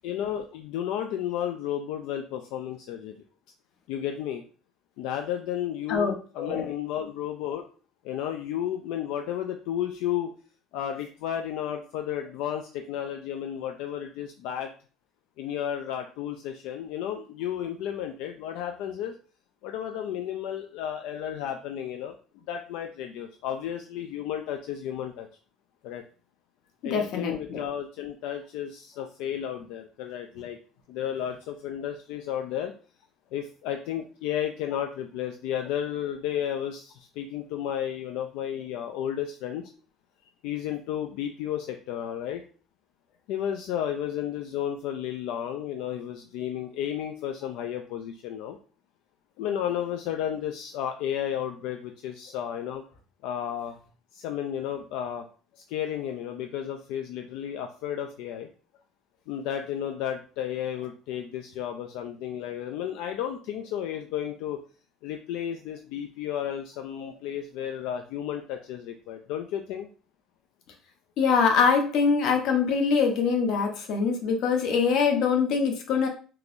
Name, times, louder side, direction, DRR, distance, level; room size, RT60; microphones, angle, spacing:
voice 1, 0.0-3.2 3.9-4.4 5.0-7.6 8.0-10.3 10.7-14.7 15.4-19.1 19.6-22.1 22.5-25.3 25.8-26.0 26.8-30.6 30.9-32.7 33.3-39.7 40.4-42.4 43.3-48.6 49.4-52.8 53.2-53.8 54.1-55.3 55.7-58.5 59.3-64.6 65.0-69.9, left 10 dB, 80° left, 5 dB, 0.3 m, -32 dB
voice 2, 5.9-6.7 26.8-27.6 71.2-76.1, left 5 dB, 55° left, 3 dB, 0.8 m, -24 dB
3.7 x 2.8 x 2.5 m, 0.38 s
cardioid pair, 180°, 0 cm